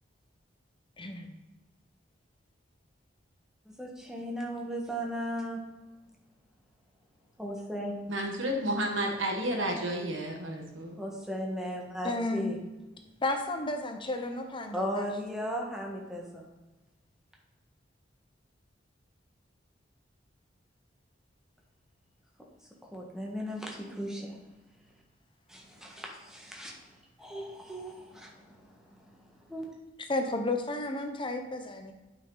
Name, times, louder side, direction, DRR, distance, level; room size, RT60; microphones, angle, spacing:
voice 1, 1.0-1.3 12.0-12.5 13.2-15.1 30.0-31.9, left 2 dB, 25° left, 5 dB, 0.8 m, -32 dB
voice 2, 3.7-5.6 7.4-7.9 11.0-12.6 14.7-16.4 22.9-24.3 25.5-26.7 27.2-28.6 29.5-29.7, equal, 5° right, -1 dB, 1.5 m, -36 dB
voice 3, 8.1-11.0, right 1 dB, 85° right, 2 dB, 1.6 m, -31 dB
9.0 x 5.9 x 4.0 m, 1.1 s
head